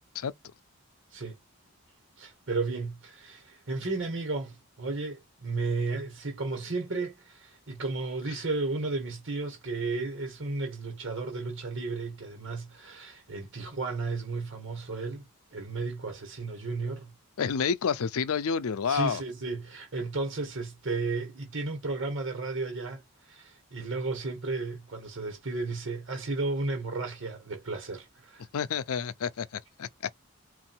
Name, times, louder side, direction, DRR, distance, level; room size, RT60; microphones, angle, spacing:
voice 1, 2.2-15.2 15.5-17.1 18.9-28.5, right 3 dB, 55° right, 1.3 m, -33 dB
voice 2, 17.4-19.2 28.5-29.9, left 6 dB, 75° left, 0.5 m, -29 dB
3.7 x 2.5 x 4.4 m
head